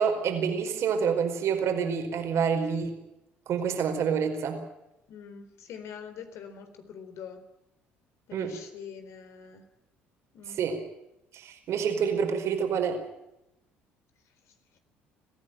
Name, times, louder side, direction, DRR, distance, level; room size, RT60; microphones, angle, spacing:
voice 1, 0.0-3.0 3.5-4.6 8.3-8.5 10.5-10.8 11.3-13.0, right 6 dB, 60° right, 4 dB, 4.8 m, -27 dB
voice 2, 5.1-7.4 8.3-9.6 10.3-10.6, left 7 dB, 65° left, 7 dB, 4.1 m, -44 dB
22.0 x 15.5 x 9.2 m, 0.88 s
hypercardioid pair, 65°, 5 cm